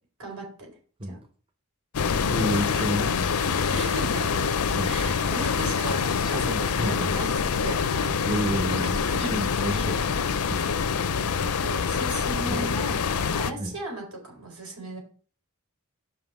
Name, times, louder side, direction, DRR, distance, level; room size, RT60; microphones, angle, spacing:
voice 1, 0.2-0.7 1.0-1.2 3.7-4.5 4.8-7.3 7.6-8.2 8.8-9.3 10.5-10.8 11.3-15.0, right 2 dB, 80° right, 0 dB, 4.2 m, -36 dB
sound 1, 1.9-13.5, left 6 dB, 85° left, 0.6 m, -26 dB
voice 2, 2.3-3.2 4.7-5.2 6.1-7.1 8.2-10.1 10.5-10.6 12.4-12.7 13.5-13.8, right 1 dB, 25° right, 6 dB, 0.7 m, -31 dB
5.6 x 5.6 x 6.0 m, 0.42 s
head